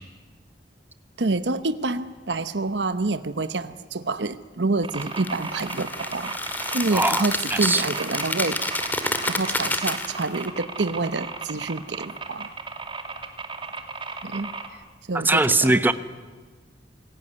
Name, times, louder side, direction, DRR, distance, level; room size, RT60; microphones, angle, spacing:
voice 1, 1.2-6.3 6.7-8.6 9.3-12.5 14.2-14.5 15.1-15.8, right 3 dB, 80° right, 12 dB, 0.9 m, -27 dB
sound 1, 4.8-14.7, right 4 dB, 30° right, 2.4 m, -35 dB
sound 2, 5.0-10.5, left 2 dB, 10° left, 2.0 m, -29 dB
voice 2, 6.9-7.2 7.5-7.8 15.2-15.9, right 2 dB, 10° right, 12 dB, 1.0 m, -20 dB
27.5 x 18.5 x 9.7 m, 1.4 s
head